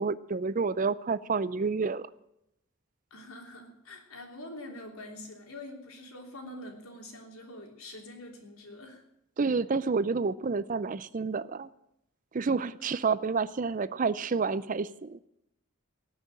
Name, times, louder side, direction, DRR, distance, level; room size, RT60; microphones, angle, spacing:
voice 1, 0.0-2.1 9.4-11.7 12.3-15.2, right 4 dB, 40° right, 17 dB, 0.4 m, -29 dB
voice 2, 3.1-9.0 12.8-12.9, left 1 dB, 80° left, 2 dB, 3.4 m, -45 dB
19.0 x 6.3 x 8.8 m, 0.83 s
head